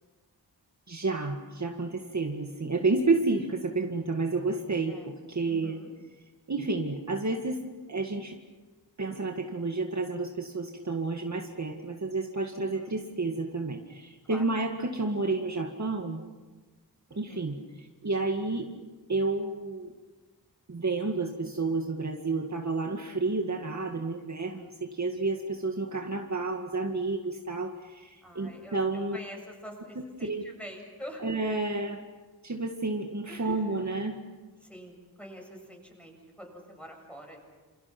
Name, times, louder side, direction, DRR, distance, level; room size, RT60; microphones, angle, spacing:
voice 1, 0.9-4.9 5.3-5.8 6.5-7.6 7.9-8.4 9.0-16.2 17.2-17.6 18.0-18.7 19.1-19.9 20.7-29.2 30.2-30.4 31.2-32.0 32.4-34.1, right 3 dB, 45° right, 2 dB, 2.1 m, -30 dB
voice 2, 5.5-5.9 12.5-13.0 14.3-14.4 14.9-15.0 17.1-17.5 28.2-31.3 33.3-34.2 34.6-37.4, equal, 5° left, 1 dB, 7.9 m, -46 dB
29.0 x 28.5 x 6.1 m, 1.3 s
wide cardioid pair, 110°, 39 cm